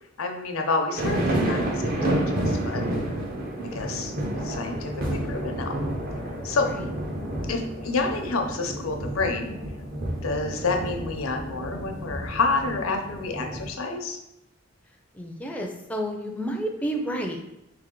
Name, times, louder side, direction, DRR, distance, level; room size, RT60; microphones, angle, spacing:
voice 1, 0.2-2.8 3.7-4.1 4.4-5.8 6.4-6.7 7.5-9.6 10.2-14.2, left 3 dB, 90° left, 4 dB, 0.7 m, -28 dB
sound 1, 1.0-13.7, right 1 dB, 45° right, 0.7 m, -30 dB
voice 2, 15.1-17.4, right 1 dB, 5° left, 2 dB, 0.4 m, -30 dB
3.4 x 3.3 x 3.7 m, 0.87 s
head